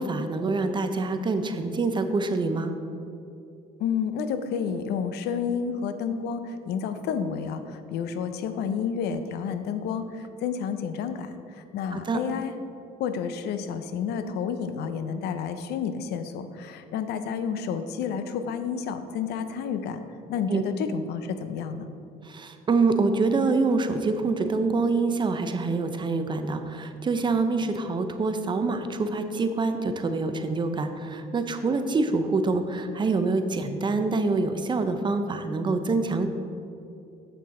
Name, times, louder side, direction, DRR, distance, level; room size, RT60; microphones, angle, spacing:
voice 1, 0.0-2.7 11.9-12.2 20.5-20.6 22.2-36.3, right 3 dB, 25° right, 8 dB, 0.5 m, -26 dB
voice 2, 3.8-12.6 13.0-20.0 20.3-21.9, left 7 dB, 75° left, 10 dB, 0.6 m, -30 dB
7.6 x 6.6 x 3.7 m, 2.7 s
cardioid pair, 110°, 17 cm